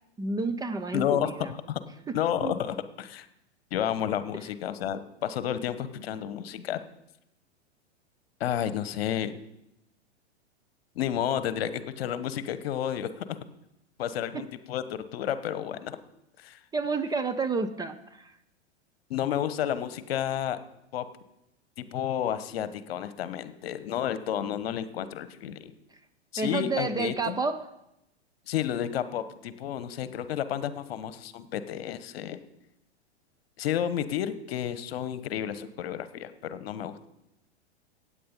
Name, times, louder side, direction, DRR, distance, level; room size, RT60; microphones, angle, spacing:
voice 1, 0.2-1.5 2.1-2.2 2.4-2.5 14.3-14.4 16.7-18.3 26.4-27.7, right 4 dB, 10° right, 8 dB, 0.6 m, -30 dB
voice 2, 0.9-1.8 2.1-3.3 3.7-6.8 8.4-9.4 11.0-13.4 14.0-16.0 16.4-16.6 19.1-20.6 20.9-21.0 21.8-25.7 26.3-27.4 28.5-32.4 33.6-37.1, left 10 dB, 60° left, 13 dB, 1.1 m, -31 dB
16.0 x 8.9 x 5.3 m, 0.85 s
figure-of-eight pair, 100°, 34 cm